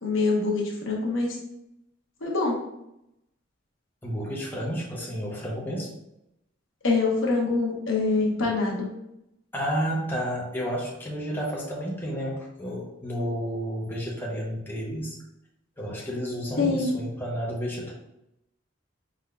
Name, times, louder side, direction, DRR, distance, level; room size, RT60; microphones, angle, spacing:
voice 1, 0.0-1.4 2.2-2.6 6.8-8.9 16.6-16.9, left 3 dB, 70° left, -1 dB, 1.0 m, -25 dB
voice 2, 4.0-5.9 9.5-15.2 15.8-17.9, equal, 10° left, -4 dB, 0.7 m, -31 dB
4.9 x 3.7 x 2.2 m, 0.84 s
head